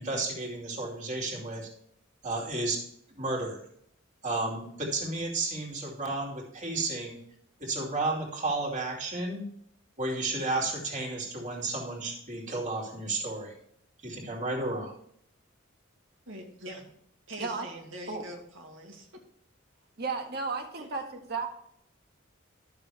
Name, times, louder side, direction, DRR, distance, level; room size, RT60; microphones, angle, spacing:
voice 1, 0.0-1.7 2.2-2.8 3.2-3.6 4.2-7.2 7.6-9.5 10.0-13.5 14.0-14.9, right 2 dB, 40° right, -2 dB, 2.6 m, -32 dB
voice 2, 16.3-16.9 17.3-19.2 20.8-20.9, equal, 75° right, 1 dB, 2.1 m, -43 dB
voice 3, 20.0-21.5, right 4 dB, 55° right, 3 dB, 1.7 m, -33 dB
12.0 x 6.8 x 3.4 m, 0.68 s
head